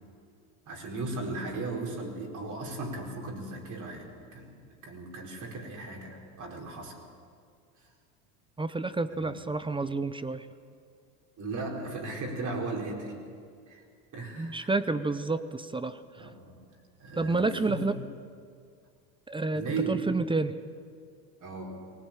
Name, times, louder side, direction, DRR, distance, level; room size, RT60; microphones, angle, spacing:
voice 1, 0.7-7.0 9.2-9.4 11.4-13.1 13.7-13.8 14.1-14.7 16.2-16.6 17.0-17.8 19.5-20.0 21.4-21.8, right 3 dB, 40° right, 0 dB, 4.8 m, -36 dB
voice 2, 8.6-10.4 14.4-16.0 17.2-18.0 19.3-19.6 19.9-20.5, right 3 dB, 10° right, 13 dB, 0.6 m, -29 dB
20.0 x 17.5 x 9.0 m, 2.2 s
supercardioid pair, 105°, 45 cm